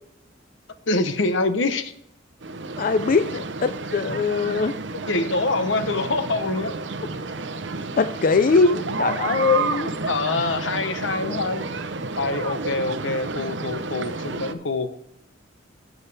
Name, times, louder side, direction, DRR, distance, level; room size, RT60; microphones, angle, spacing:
voice 1, 0.9-1.9 5.1-6.7 10.1-11.7 12.2-14.9, left 3 dB, 80° left, 10 dB, 0.9 m, -25 dB
sound 1, 2.4-14.5, right 4 dB, 70° right, 0.7 m, -31 dB
voice 2, 2.8-4.8 8.0-9.9, left 4 dB, 45° left, 11 dB, 0.4 m, -21 dB
12.0 x 7.3 x 3.4 m, 0.79 s
head